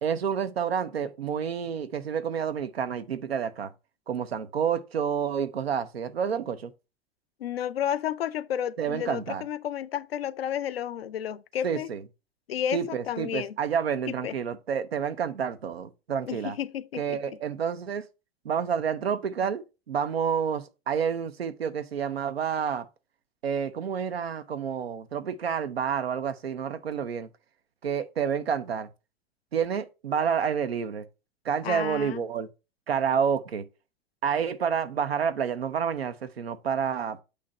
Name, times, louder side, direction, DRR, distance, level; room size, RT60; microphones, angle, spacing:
voice 1, 0.0-3.7 4.1-6.7 8.8-9.4 11.6-12.0 12.7-16.6 17.0-18.0 18.4-22.9 23.4-27.3 27.8-28.9 29.5-31.0 31.4-32.5 32.9-33.6 34.2-37.2, right 7 dB, 80° right, 0.7 m, -29 dB
voice 2, 7.4-11.9 12.5-13.6 14.1-14.4 16.3-17.2 31.6-32.2, left 10 dB, 75° left, 0.5 m, -32 dB
8.4 x 2.9 x 5.2 m
figure-of-eight pair, 85°, 30 cm